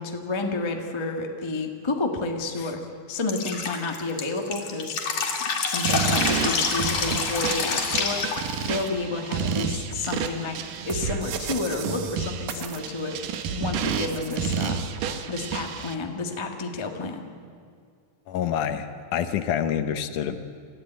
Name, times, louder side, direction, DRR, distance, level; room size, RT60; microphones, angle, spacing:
voice 1, 0.0-2.8 3.1-5.0 5.6-10.5 10.9-13.2 13.5-14.8 15.3-17.2, left 3 dB, 20° left, 3 dB, 0.8 m, -30 dB
Drip, 3.3-8.9, left 5 dB, 55° left, 3.4 m, -27 dB
sound 1, 5.8-15.9, right 7 dB, 75° right, 2.8 m, -30 dB
voice 2, 18.3-20.4, left 9 dB, 75° left, 9 dB, 2.4 m, -27 dB
27.5 x 14.0 x 9.3 m, 2.2 s
omnidirectional pair, 3.8 m